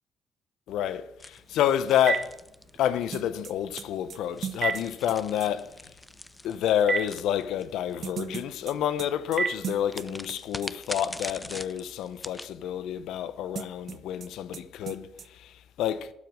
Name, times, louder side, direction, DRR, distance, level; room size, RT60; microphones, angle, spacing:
voice 1, 0.7-2.4 2.8-5.7 6.4-16.1, left 10 dB, 85° left, 0.7 m, -29 dB
sound 1, 1.2-3.2 4.2-7.9 9.9-12.5, left 1 dB, 10° left, 0.5 m, -42 dB
Telephone, 1.4-10.2, right 5 dB, 40° right, 1.4 m, -37 dB
sound 2, 3.1-5.5 8.0-10.4 10.6-10.7 13.5-14.3 14.5-14.6 14.9-15.3, right 8 dB, 55° right, 0.6 m, -38 dB
12.0 x 5.0 x 7.6 m
cardioid pair, 90°, 0 cm